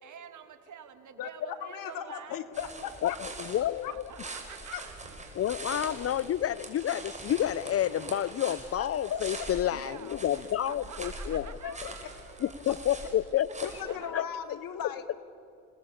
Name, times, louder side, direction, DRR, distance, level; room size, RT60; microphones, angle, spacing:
voice 1, 0.0-2.4 3.4-3.6 3.9-5.3 9.7-12.6 13.0-13.2 13.5-13.6 13.9-14.3, right 8 dB, 55° right, 9 dB, 2.7 m, -48 dB
voice 2, 1.2-3.2 3.8-3.9 4.7-4.8 8.8-9.5 11.6-11.9 13.6-15.2, left 9 dB, 65° left, 9 dB, 2.4 m, -37 dB
sound 1, 2.5-13.8, right 2 dB, 20° right, 5.7 m, -43 dB
voice 3, 3.0-3.9 5.4-11.5 12.4-13.5 14.1-14.2, left 11 dB, 40° left, 18 dB, 0.6 m, -29 dB
29.5 x 19.0 x 8.6 m, 2.9 s
supercardioid pair, 75°, 36 cm